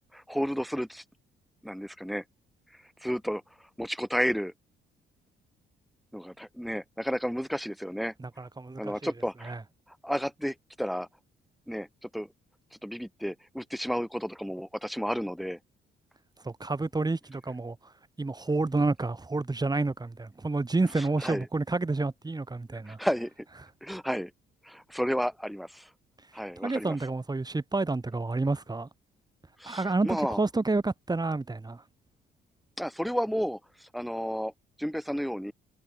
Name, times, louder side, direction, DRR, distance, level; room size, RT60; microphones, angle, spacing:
voice 1, 0.1-1.0 1.6-2.2 3.0-3.4 3.8-4.5 6.1-8.1 8.8-9.6 10.0-11.1 11.7-12.3 12.8-15.6 21.0-21.5 22.9-23.5 23.8-24.3 24.6-25.9 26.3-27.0 29.6-30.4 32.8-34.5 34.8-35.5, equal, ahead, 2.4 m, -32 dB
voice 2, 8.2-9.1 9.5-9.6 16.4-17.8 18.2-23.0 26.6-28.9 29.7-31.8, right 3 dB, 20° right, 4.3 m, -29 dB
cardioid pair, 90°, 20 cm